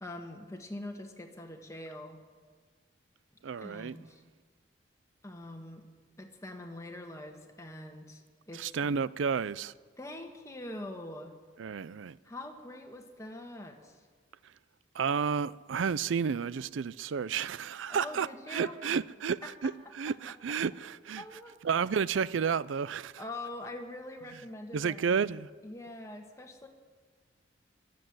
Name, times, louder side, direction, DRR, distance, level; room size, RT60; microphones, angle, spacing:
voice 1, 0.0-2.2 3.6-4.2 5.2-5.8 6.2-9.0 10.0-11.3 12.2-14.0 17.9-18.7 19.4-19.5 21.2-21.6 23.2-25.2 25.6-26.7, left 1 dB, 15° left, 1.4 m, -43 dB
voice 2, 3.4-4.0 8.5-9.7 11.6-12.2 14.4-14.5 14.9-21.2 21.6-23.2 24.3-24.4 24.7-25.5, right 6 dB, 80° right, 0.4 m, -31 dB
22.0 x 7.7 x 7.8 m
head